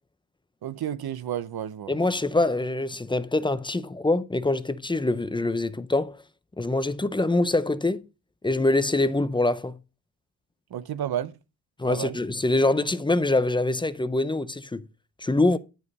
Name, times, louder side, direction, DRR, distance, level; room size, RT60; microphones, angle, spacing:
voice 1, 0.6-1.9 10.7-11.3 11.9-12.2, right 10 dB, 75° right, 0.8 m, -31 dB
voice 2, 1.9-6.2 6.6-8.0 8.4-9.8 11.8-14.8 15.2-15.6, left 2 dB, 15° left, 0.5 m, -24 dB
11.0 x 5.0 x 5.4 m
wide cardioid pair, 160°, 37 cm